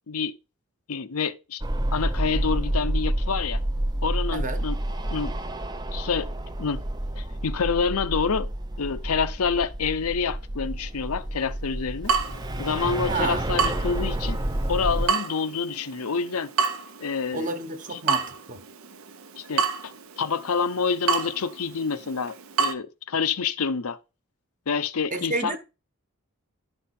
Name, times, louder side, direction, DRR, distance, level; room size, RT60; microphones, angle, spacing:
voice 1, 0.1-0.4 0.9-1.6 1.9-3.6 4.0-4.8 5.1-5.4 5.9-6.3 6.6-6.8 7.2-8.5 8.8-12.1 12.6-14.4 14.7-16.5 17.0-17.5 17.9-18.0 19.4-24.0 24.7-25.6, left 5 dB, 80° left, 0.7 m, -27 dB
sound 1, 1.6-15.1, right 1 dB, 20° right, 0.6 m, -29 dB
voice 2, 4.3-4.6 13.1-13.4 17.3-18.6 25.1-25.6, right 3 dB, 35° right, 1.2 m, -30 dB
Water tap faucet / Drip, 12.1-22.7, right 5 dB, 70° right, 0.8 m, -30 dB
11.5 x 5.6 x 4.3 m
head